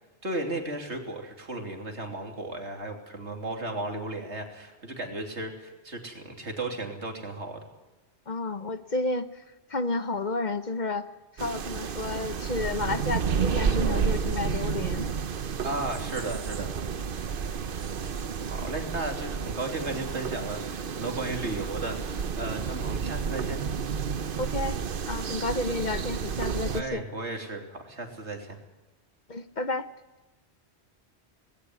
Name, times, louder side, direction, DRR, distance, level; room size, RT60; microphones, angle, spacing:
voice 1, 0.2-7.7 15.6-16.7 18.5-23.6 26.6-28.6, right 2 dB, 85° right, 3 dB, 3.4 m, -35 dB
voice 2, 8.3-9.4 9.7-11.1 11.3-15.1 24.4-24.8 25.1-27.0 29.3-29.9, left 2 dB, 45° left, 11 dB, 1.1 m, -31 dB
sound 1, 11.4-26.8, right 6 dB, 55° right, 1.0 m, -31 dB
19.5 x 17.0 x 9.6 m, 1.1 s
omnidirectional pair, 1.1 m